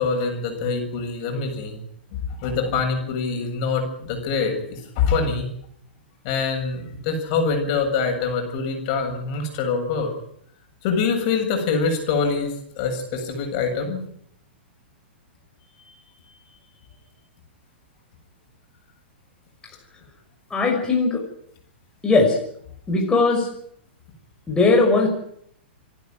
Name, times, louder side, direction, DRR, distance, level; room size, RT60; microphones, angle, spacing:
voice 1, 0.0-1.8 2.1-5.5 6.2-10.1 10.8-14.0 15.8-15.9 16.4-16.5, left 5 dB, 45° left, 4 dB, 7.5 m, -25 dB
voice 2, 20.5-21.2 22.0-22.4 22.9-23.5 24.5-25.1, left 3 dB, 15° left, -1 dB, 5.9 m, -18 dB
28.5 x 11.5 x 9.6 m, 0.68 s
hypercardioid pair, 115°, 6 cm